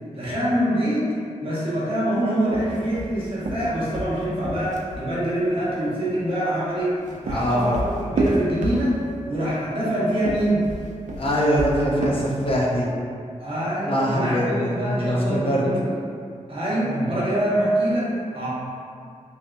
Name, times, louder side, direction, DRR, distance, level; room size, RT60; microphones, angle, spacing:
voice 1, 0.1-1.1 1.4-10.6 13.4-15.8 16.5-18.5, right 1 dB, 45° right, -9 dB, 1.1 m, -25 dB
sound 1, 2.4-5.1 6.8-9.2 10.1-12.7, right 1 dB, 70° right, 0.4 m, -29 dB
voice 2, 7.3-7.7 11.2-12.9 13.9-15.7 16.9-17.1, equal, 45° left, -4 dB, 0.5 m, -23 dB
3.2 x 2.7 x 2.5 m, 2.3 s
wide cardioid pair, 75°, 13 cm